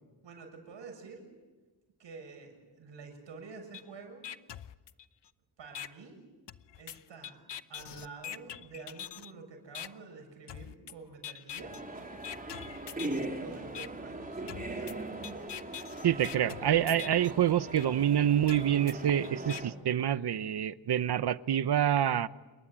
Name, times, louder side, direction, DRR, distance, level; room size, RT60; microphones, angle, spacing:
voice 1, 0.2-1.3 2.0-4.3 5.6-6.2 6.8-7.4 7.7-11.8 13.0-15.1, right 4 dB, 90° right, 4 dB, 7.1 m, -48 dB
sound 1, 3.7-3.8 4.2-5.3 5.7-5.9 6.5-9.3 9.7-9.9 10.5-10.9 11.2-11.8 12.2-13.3 13.7-13.9 14.5-17.3 17.7-17.9 18.5-19.6, left 10 dB, 70° left, 0.9 m, -43 dB
sound 2, 11.6-19.7, right 2 dB, 20° right, 4.0 m, -40 dB
voice 2, 16.0-22.3, right 10 dB, 65° right, 15 dB, 0.9 m, -27 dB
28.0 x 23.0 x 9.0 m, 1.2 s
wide cardioid pair, 120°, 43 cm